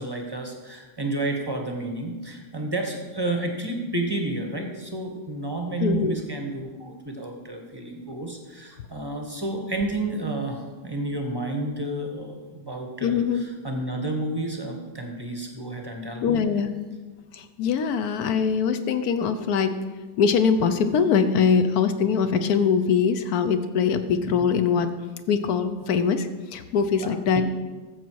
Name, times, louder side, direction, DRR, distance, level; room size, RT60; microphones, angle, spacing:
voice 1, 0.0-16.4 24.3-24.5 27.0-27.4, right 2 dB, 20° right, 3 dB, 0.8 m, -31 dB
voice 2, 5.8-6.2 13.0-13.5 16.2-16.7 17.3-19.7 20.2-24.9 25.3-27.4, left 6 dB, 65° left, 10 dB, 1.0 m, -22 dB
13.5 x 7.3 x 4.6 m, 1.3 s
omnidirectional pair, 2.1 m